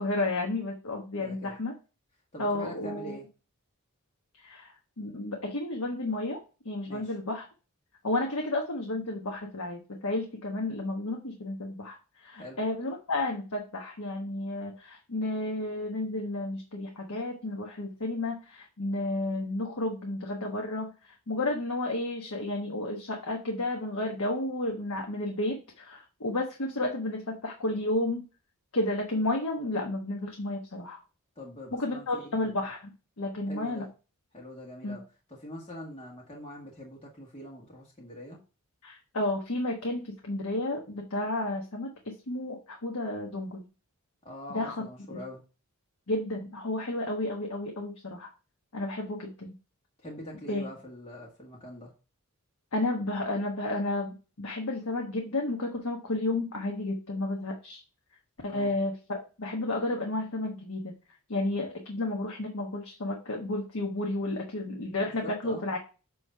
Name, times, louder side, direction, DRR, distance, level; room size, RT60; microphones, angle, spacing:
voice 1, 0.0-1.7 2.4-3.2 4.4-6.4 6.6-7.5 8.0-20.9 21.3-28.2 28.7-31.0 31.7-32.9 33.2-33.9 34.8-35.0 38.8-43.6 44.5-44.8 45.1-45.2 46.1-48.3 48.7-49.6 50.5-50.6 52.7-57.8 58.4-60.9 61.3-65.8, left 2 dB, 75° left, 0 dB, 1.2 m, -32 dB
voice 2, 1.2-1.5 2.3-3.3 6.9-7.1 12.4-12.6 31.4-32.6 33.5-33.9 34.3-35.0 35.4-38.4 44.2-45.4 50.0-51.9 58.5-58.7 65.2-65.6, left 1 dB, 25° left, -4 dB, 1.7 m, -43 dB
7.9 x 3.2 x 5.5 m, 0.33 s
head